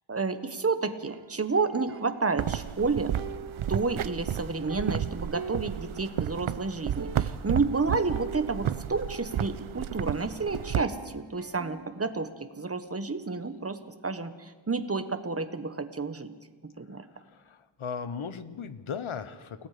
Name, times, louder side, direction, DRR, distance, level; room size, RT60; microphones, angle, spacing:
voice 1, 0.1-3.1 3.7-16.3 16.6-17.0, right 4 dB, 30° right, 10 dB, 1.4 m, -30 dB
sound 1, 1.1-2.8 3.2-6.4 6.7-6.8 7.0-7.6 8.1-10.1 10.5-12.2, right 6 dB, 45° right, 0.9 m, -45 dB
sound 2, 2.4-10.9, right 10 dB, 75° right, 0.8 m, -32 dB
voice 2, 16.9-19.7, left 6 dB, 75° left, 12 dB, 1.2 m, -38 dB
29.5 x 18.0 x 5.1 m, 1.4 s
wide cardioid pair, 95°, 50 cm